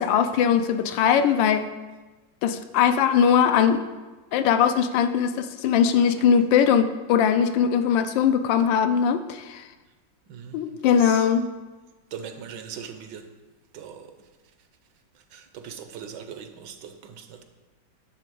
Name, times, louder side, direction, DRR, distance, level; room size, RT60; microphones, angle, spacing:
voice 1, 0.0-1.7 2.4-3.8 4.3-9.7 10.5-11.5, left 8 dB, 85° left, 10 dB, 1.3 m, -21 dB
voice 2, 10.3-11.3 12.1-13.3 13.7-14.1 15.3-17.4, right 7 dB, 75° right, 7 dB, 1.3 m, -40 dB
10.0 x 3.8 x 6.8 m, 1.2 s
omnidirectional pair, 2.0 m